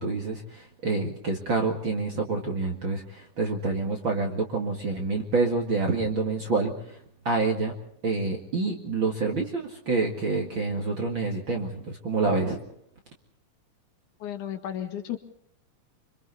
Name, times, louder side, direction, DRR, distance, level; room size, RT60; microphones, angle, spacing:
voice 1, 0.0-6.7 7.2-7.7 8.0-12.6, right 3 dB, 40° right, 1 dB, 2.5 m, -27 dB
voice 2, 14.2-15.3, left 10 dB, 70° left, 5 dB, 3.2 m, -34 dB
26.0 x 26.0 x 4.1 m, 0.66 s
omnidirectional pair, 3.7 m